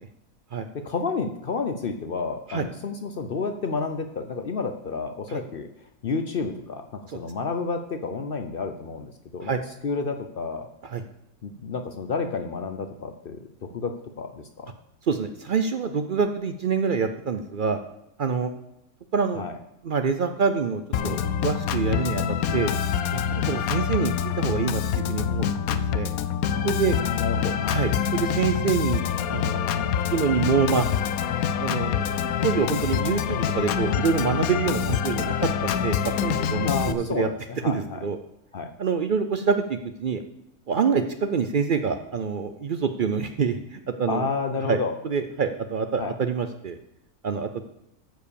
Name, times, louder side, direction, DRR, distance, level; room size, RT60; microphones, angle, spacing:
voice 1, 0.7-5.7 6.0-9.5 9.8-10.7 11.4-14.7 19.3-19.6 27.0-27.8 36.6-38.1 38.5-38.7 44.1-44.9 46.0-46.2, left 4 dB, 55° left, 7 dB, 0.7 m, -30 dB
voice 2, 15.1-17.8 18.2-18.5 19.1-19.4 19.8-22.2 22.5-22.7 23.1-25.4 25.7-26.1 26.6-27.0 27.7-29.0 29.3-30.8 31.6-32.1 32.4-35.3 35.6-37.3 37.6-38.2 38.8-40.2 40.7-44.3 44.7-44.8 45.0-46.8 47.2-47.5, right 6 dB, 65° right, 8 dB, 0.5 m, -26 dB
Organ, 20.9-36.9, left 8 dB, 75° left, 1.1 m, -26 dB
13.5 x 4.8 x 6.9 m, 0.82 s
omnidirectional pair, 1.6 m